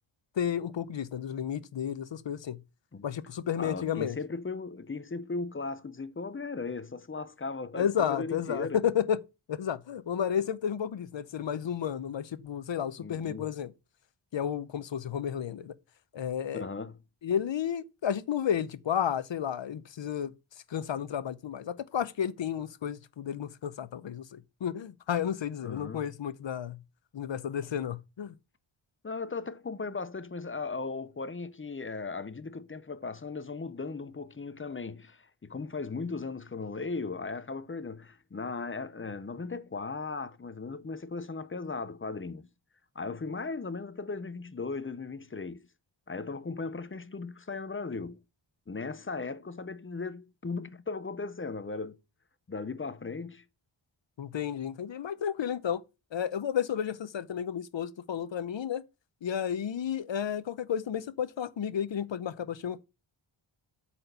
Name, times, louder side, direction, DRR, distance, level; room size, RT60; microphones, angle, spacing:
voice 1, 0.4-2.6 3.0-4.2 7.8-9.2 9.5-13.7 14.3-15.7 16.1-16.6 17.2-20.3 20.7-26.8 27.1-28.3 54.2-55.8 56.1-58.8 59.2-62.8, left 8 dB, 65° left, 0.8 m, -32 dB
voice 2, 3.6-8.8 13.0-13.5 16.5-17.0 25.6-26.1 29.0-42.5 43.0-45.6 46.1-48.2 48.7-52.0 52.5-53.4, left 4 dB, 25° left, 0.6 m, -37 dB
8.7 x 4.3 x 6.7 m
wide cardioid pair, 120°, 49 cm